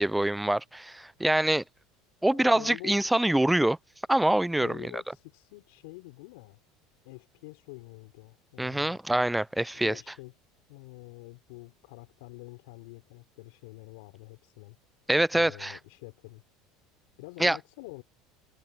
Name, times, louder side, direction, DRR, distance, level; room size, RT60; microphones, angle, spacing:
voice 1, 0.0-1.6 2.2-3.8 4.1-5.0 8.6-9.9 15.1-15.8 17.4-17.6, right 1 dB, 5° right, 0.4 m, -25 dB
voice 2, 2.3-3.0 4.6-6.6 7.0-9.0 9.7-10.3 10.7-14.8 15.3-16.4 17.2-18.0, left 24 dB, 80° left, 4.6 m, -47 dB
supercardioid pair, 105°, 0 cm